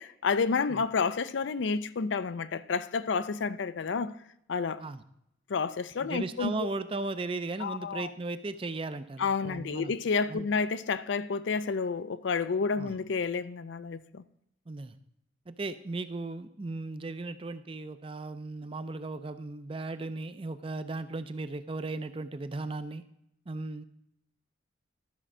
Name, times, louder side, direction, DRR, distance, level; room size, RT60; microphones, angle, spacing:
voice 1, 0.0-4.1 4.5-4.8 5.5-6.7 7.6-8.1 9.2-14.2, left 5 dB, 65° left, 0.4 m, -30 dB
voice 2, 6.0-9.9 10.3-10.5 12.8-12.9 14.7-15.0 15.5-23.0 23.5-23.8, right 3 dB, 25° right, 0.4 m, -36 dB
12.5 x 4.4 x 6.1 m
head